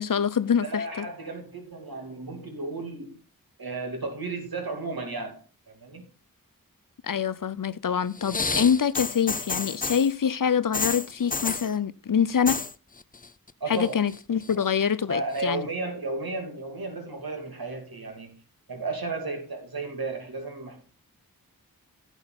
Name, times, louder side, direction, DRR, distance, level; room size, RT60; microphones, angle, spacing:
voice 1, 0.0-1.1 7.0-12.6 13.7-15.7, left 7 dB, 65° left, 0.7 m, -25 dB
voice 2, 0.6-3.2 3.6-6.0 13.6-14.0 15.1-18.4 18.7-20.8, right 3 dB, 80° right, 2.7 m, -33 dB
sound 1, 8.2-10.1 10.7-11.7 12.3-12.7 13.0-13.5 13.8-14.6 15.4-15.5, left 4 dB, 25° left, 0.5 m, -30 dB
11.5 x 8.1 x 4.0 m
cardioid pair, 45°, 36 cm